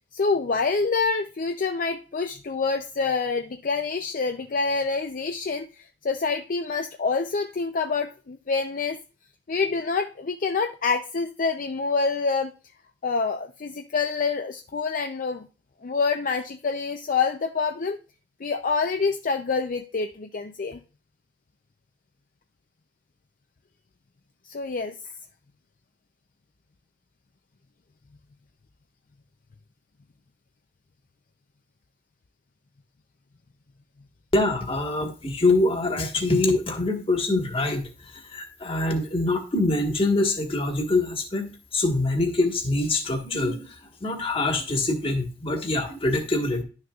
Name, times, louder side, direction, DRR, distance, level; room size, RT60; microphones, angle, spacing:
voice 1, 0.1-9.0 9.5-12.5 13.0-15.5 15.8-18.0 18.4-20.8 24.4-25.0, left 4 dB, 50° left, 7 dB, 0.5 m, -26 dB
voice 2, 34.3-37.9 38.3-43.7 44.0-46.6, left 2 dB, 30° left, 4 dB, 1.5 m, -24 dB
11.5 x 6.5 x 2.4 m, 0.34 s
head